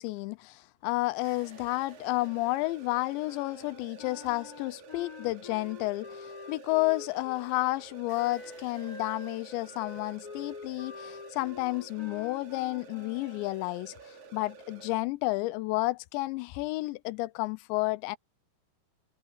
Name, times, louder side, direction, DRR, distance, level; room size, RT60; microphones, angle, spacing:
voice 1, 0.0-18.2, left 21 dB, 90° left, 3.0 m, -31 dB
sound 1, 1.2-14.9, right 5 dB, 50° right, 3.4 m, -50 dB
Wind instrument woodwind instrument, 3.2-7.4 8.1-13.5, left 4 dB, 20° left, 4.3 m, -46 dB
omnidirectional pair, 5.0 m